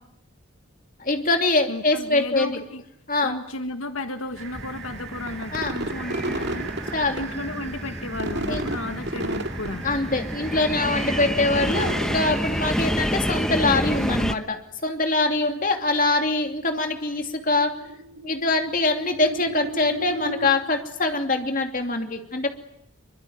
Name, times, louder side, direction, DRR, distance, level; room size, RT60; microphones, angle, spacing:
voice 1, 1.0-2.6 3.1-3.4 5.5-5.7 6.9-7.2 8.5-8.6 9.8-17.8 18.2-22.5, left 2 dB, 40° left, 5 dB, 2.9 m, -24 dB
voice 2, 1.7-2.8 3.2-6.9 7.1-9.8, left 2 dB, 75° left, 7 dB, 1.7 m, -33 dB
sound 1, 4.3-14.3, equal, 5° left, 1.0 m, -29 dB
sound 2, 4.4-14.1, right 2 dB, 50° right, 2.2 m, -34 dB
sound 3, 15.8-20.5, equal, 85° right, 3.5 m, -37 dB
25.0 x 24.0 x 9.5 m, 0.76 s
head